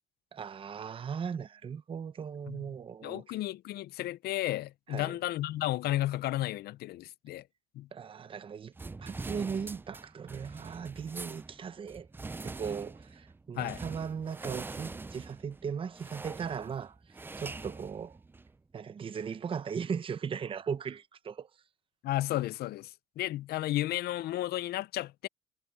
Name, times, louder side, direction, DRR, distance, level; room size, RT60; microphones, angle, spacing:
voice 1, 0.3-3.3 4.9-5.2 7.9-8.7 9.0-12.1 12.4-17.0 17.4-18.2 18.7-21.5, right 6 dB, 30° right, 0.8 m, -38 dB
voice 2, 3.0-7.4 7.7-7.9 13.6-13.8 22.0-25.3, left 15 dB, 70° left, 0.6 m, -33 dB
sound 1, 8.8-18.6, right 3 dB, 10° right, 0.4 m, -44 dB
cardioid pair, 110°, 17 cm